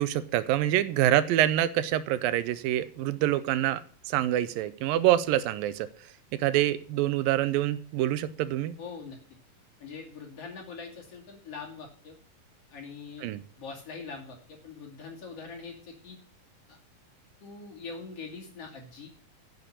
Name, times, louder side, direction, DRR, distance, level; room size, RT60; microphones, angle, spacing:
voice 1, 0.0-3.8 4.1-5.9 6.4-8.8 13.2-13.4, right 13 dB, 85° right, 15 dB, 2.4 m, -26 dB
voice 2, 8.8-9.2 9.8-12.2 12.7-16.2 16.7-16.8 17.4-19.1, left 4 dB, 45° left, 0 dB, 3.4 m, -43 dB
10.5 x 6.8 x 8.6 m, 0.43 s
omnidirectional pair, 4.1 m